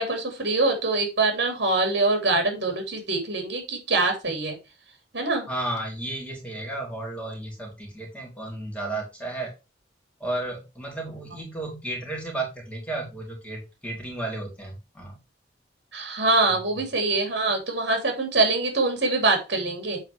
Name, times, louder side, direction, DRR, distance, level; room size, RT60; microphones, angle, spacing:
voice 1, 0.0-4.6 5.1-5.5 15.9-20.0, right 2 dB, 70° right, 4 dB, 3.0 m, -24 dB
voice 2, 5.5-9.5 10.2-15.1 16.7-16.8, right 2 dB, 5° left, -1 dB, 2.8 m, -33 dB
7.9 x 4.2 x 4.8 m, 0.27 s
head